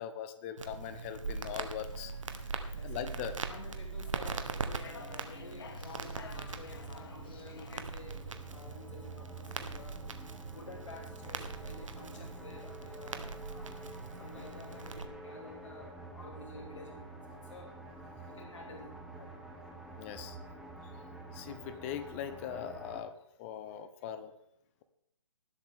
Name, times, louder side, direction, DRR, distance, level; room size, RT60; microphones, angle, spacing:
voice 1, 0.0-2.1 2.8-3.4 20.0-20.4 21.3-24.3, left 9 dB, 25° left, 11 dB, 0.9 m, -41 dB
Crackle, 0.6-15.0, right 4 dB, 80° right, 1.4 m, -41 dB
sound 1, 1.5-7.8, left 5 dB, 50° left, 1.4 m, -52 dB
voice 2, 2.7-3.1 3.5-10.0 10.5-13.8 14.2-17.7 18.3-19.3, left 2 dB, 70° left, 0 dB, 3.0 m, -51 dB
sound 2, 4.0-23.0, right 2 dB, ahead, 1.1 m, -49 dB
19.5 x 7.7 x 3.8 m, 0.75 s
hypercardioid pair, 150°, 16 cm